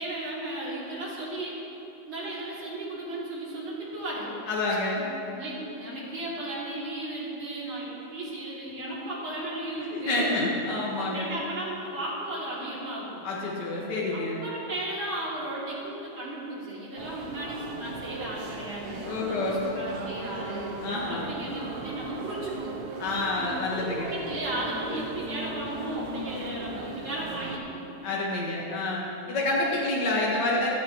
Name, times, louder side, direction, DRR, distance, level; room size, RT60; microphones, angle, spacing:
voice 1, 0.0-1.6 2.1-4.3 5.3-10.4 11.0-13.3 14.1-20.8 21.1-22.8 23.4-27.8 29.8-29.9, right 1 dB, 80° right, -7 dB, 3.7 m, -35 dB
voice 2, 4.5-5.1 8.9-9.0 9.8-11.3 13.2-14.4 18.8-19.7 20.8-21.3 23.0-24.1 28.0-30.7, left 2 dB, 60° left, -5 dB, 2.2 m, -28 dB
sound 1, 17.0-27.6, right 3 dB, 55° right, 1.3 m, -38 dB
16.5 x 13.0 x 3.1 m, 2.9 s
omnidirectional pair, 2.2 m